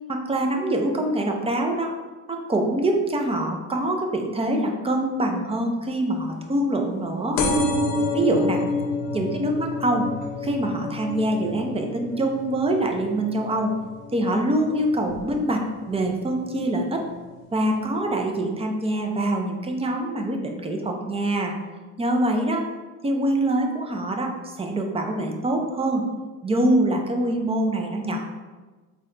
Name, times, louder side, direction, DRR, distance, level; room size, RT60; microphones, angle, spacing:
voice 1, 0.1-1.9 2.3-7.4 8.1-8.6 9.1-10.0 10.4-13.7 14.1-15.6 15.9-17.0 17.5-21.5 22.0-22.6 23.0-24.3 24.6-26.0 26.4-28.3, right 1 dB, 15° right, 2 dB, 0.4 m, -24 dB
sound 1, 7.4-14.6 15.1-15.5 16.4-16.5 16.7-16.8 17.0-17.1, left 2 dB, 70° left, 0.7 m, -28 dB
4.0 x 2.2 x 3.7 m, 1.3 s
cardioid pair, 105°, 37 cm